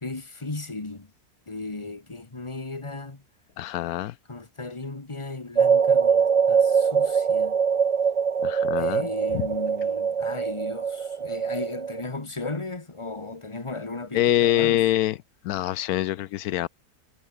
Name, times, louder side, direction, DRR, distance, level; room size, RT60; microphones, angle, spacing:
voice 1, 0.0-1.1 1.5-3.2 4.3-7.6 8.7-14.9, left 3 dB, 20° left, 1.9 m, -36 dB
voice 2, 3.6-4.1 8.4-9.1 9.3-9.4 14.1-15.2 15.4-16.7, left 14 dB, 80° left, 1.1 m, -24 dB
sound 1, 5.6-12.0, right 6 dB, 60° right, 0.3 m, -23 dB
omnidirectional pair, 1.6 m